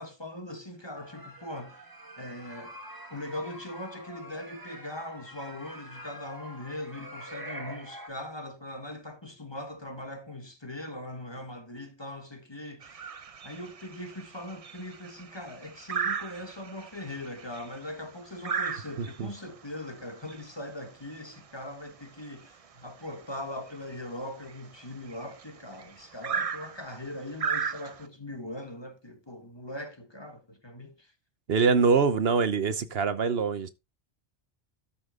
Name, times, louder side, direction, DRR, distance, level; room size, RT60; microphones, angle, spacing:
voice 1, 0.0-1.9 2.2-2.8 3.1-13.1 13.4-31.1, left 1 dB, 25° left, 1.5 m, -40 dB
sound 1, 0.9-8.1, right 1 dB, 20° right, 1.8 m, -45 dB
sound 2, 12.8-28.1, right 6 dB, 40° right, 0.6 m, -37 dB
voice 2, 31.5-33.7, right 5 dB, 65° right, 1.1 m, -24 dB
13.0 x 5.8 x 3.7 m
omnidirectional pair, 1.1 m